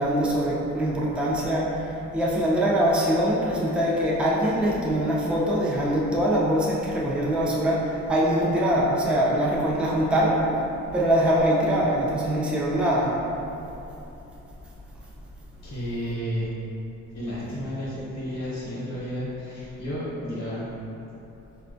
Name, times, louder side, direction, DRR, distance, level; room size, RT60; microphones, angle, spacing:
voice 1, 0.0-10.4 10.9-13.2, equal, 5° right, -5 dB, 0.4 m, -23 dB
voice 2, 15.6-16.6 17.1-20.6, equal, 65° left, -8 dB, 0.9 m, -32 dB
4.0 x 2.2 x 2.5 m, 3.0 s
cardioid pair, 90°, 30 cm